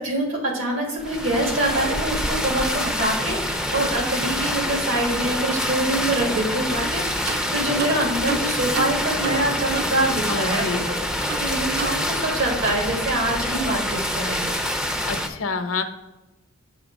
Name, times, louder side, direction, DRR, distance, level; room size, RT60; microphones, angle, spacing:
voice 1, 0.0-11.0 11.4-14.6, right 1 dB, 75° right, 0 dB, 2.2 m, -25 dB
sound 1, 1.0-15.3, equal, 5° right, 0.4 m, -26 dB
sound 2, 6.8-7.0 7.3-10.5 10.8-10.9 11.3-12.4 12.7-12.9, right 4 dB, 50° right, 0.6 m, -33 dB
voice 2, 10.3-10.9 15.1-15.8, left 4 dB, 75° left, 8 dB, 0.7 m, -27 dB
6.9 x 3.3 x 5.1 m, 1.0 s
head